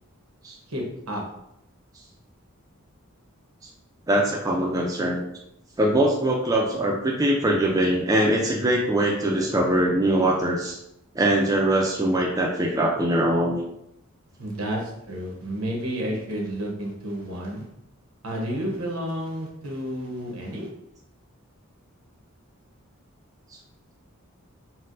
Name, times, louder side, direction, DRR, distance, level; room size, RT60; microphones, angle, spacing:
voice 1, 0.7-1.2 14.4-17.6 18.2-20.7, equal, 80° right, -1 dB, 0.9 m, -31 dB
voice 2, 4.1-5.2 5.8-10.8 11.2-13.6, right 1 dB, 15° right, -2 dB, 0.3 m, -22 dB
4.3 x 2.0 x 2.5 m, 0.80 s
head